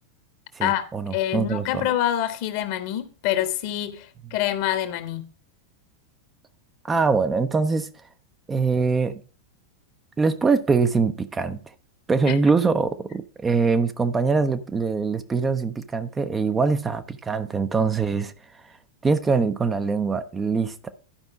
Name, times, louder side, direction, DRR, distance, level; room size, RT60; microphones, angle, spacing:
voice 1, 0.5-1.9 6.8-7.9 8.5-9.2 10.2-11.6 12.1-18.3 18.6-18.7 19.0-20.9, right 4 dB, 15° right, 0.7 m, -23 dB
voice 2, 1.1-5.2 12.3-12.4, left 12 dB, 45° left, 1.3 m, -26 dB
11.5 x 5.3 x 4.8 m
figure-of-eight pair, 90°, 0 cm